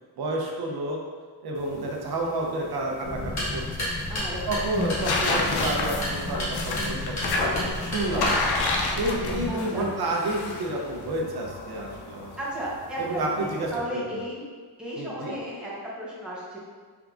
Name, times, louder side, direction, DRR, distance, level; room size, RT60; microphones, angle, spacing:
voice 1, 0.2-1.0 1.4-3.9 4.5-7.5 7.8-8.4 9.0-12.3 13.0-14.2 15.0-15.3, right 1 dB, 65° right, -1 dB, 0.7 m, -30 dB
sound 1, 1.6-13.8, left 3 dB, 70° left, 0.6 m, -31 dB
sound 2, 3.0-9.5, left 1 dB, 20° left, 0.3 m, -34 dB
sound 3, 3.2-8.7, equal, 40° left, 1.3 m, -34 dB
voice 2, 4.1-4.5 9.5-9.9 12.4-14.4 14.8-16.6, right 1 dB, ahead, -8 dB, 0.8 m, -35 dB
3.6 x 3.4 x 2.4 m, 1.5 s
wide cardioid pair, 140°, 41 cm